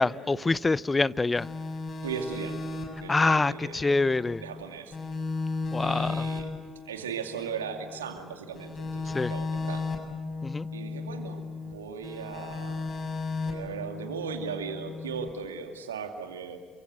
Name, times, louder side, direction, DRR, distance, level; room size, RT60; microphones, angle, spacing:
voice 1, 0.0-1.5 3.1-4.4 5.7-6.3 9.1-9.3 10.4-10.7, left 3 dB, 25° left, 20 dB, 0.7 m, -25 dB
sound 1, 1.4-4.6 4.9-8.2 8.5-11.7 12.0-15.3, left 3 dB, 40° left, 6.7 m, -35 dB
voice 2, 2.0-2.6 3.0-3.9 4.4-4.9 5.8-6.5 6.9-9.9 10.7-12.9 13.4-16.6, right 6 dB, 85° right, 5 dB, 2.4 m, -37 dB
28.0 x 24.5 x 7.7 m, 1.6 s
hypercardioid pair, 50°, 0 cm